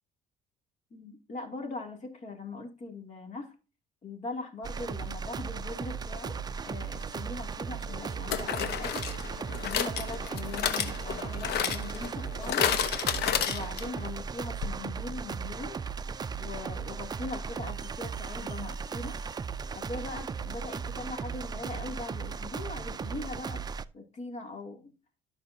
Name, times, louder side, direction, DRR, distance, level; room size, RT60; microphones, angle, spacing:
voice 1, 0.9-3.5 4.0-12.8 13.4-15.8 16.4-19.2 19.7-23.7 23.9-24.9, left 3 dB, 45° left, 2.6 m, -41 dB
sound 1, 4.6-23.8, right 5 dB, 25° right, 0.4 m, -37 dB
sound 2, 7.0-7.1 8.3-14.1 14.3-14.4 14.6-14.7, left 8 dB, 75° left, 1.1 m, -31 dB
13.0 x 5.7 x 2.7 m
cardioid pair, 110°, 17 cm